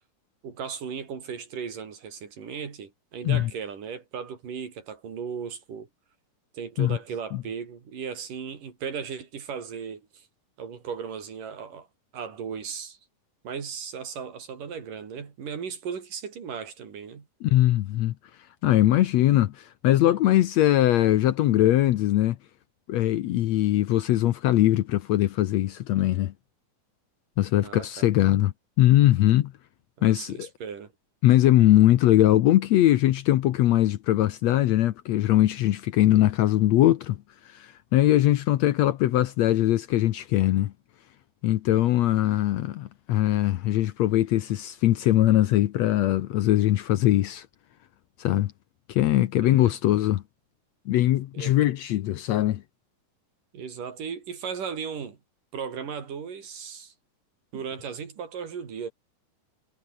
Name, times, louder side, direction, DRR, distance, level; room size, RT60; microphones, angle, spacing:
voice 1, 0.4-5.9 6.5-10.3 10.6-11.9 12.1-13.0 13.4-17.3 27.6-28.1 30.0-30.9 49.4-49.7 51.3-51.6 53.5-55.2 55.5-56.9 57.5-58.9, right 6 dB, 80° right, 5.1 m, -36 dB
voice 2, 17.4-18.1 18.6-22.4 22.9-26.3 27.4-29.5 30.0-30.5 31.2-37.2 37.5-40.7 41.4-47.5 48.2-48.5 48.9-50.2 50.9-52.6, left 14 dB, 70° left, 1.8 m, -21 dB
omnidirectional pair, 3.7 m